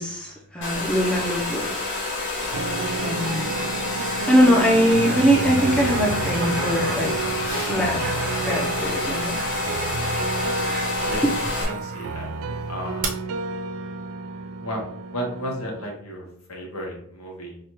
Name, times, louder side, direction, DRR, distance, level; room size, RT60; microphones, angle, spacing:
voice 1, 0.0-1.7 3.0-3.5 4.2-7.3 7.7-8.0 8.4-9.4, equal, 5° left, -4 dB, 0.6 m, -21 dB
Domestic sounds home sounds, 0.6-11.6, left 2 dB, 55° left, 1.2 m, -28 dB
sound 1, 2.5-15.9, right 4 dB, 70° right, 0.3 m, -31 dB
sound 2, 4.5-12.2 13.0-13.1, right 4 dB, 40° right, 0.7 m, -37 dB
voice 2, 11.6-12.3 12.7-13.1 14.6-14.8 15.1-17.6, equal, 70° left, -1 dB, 1.1 m, -33 dB
4.8 x 2.3 x 3.0 m, 0.64 s
head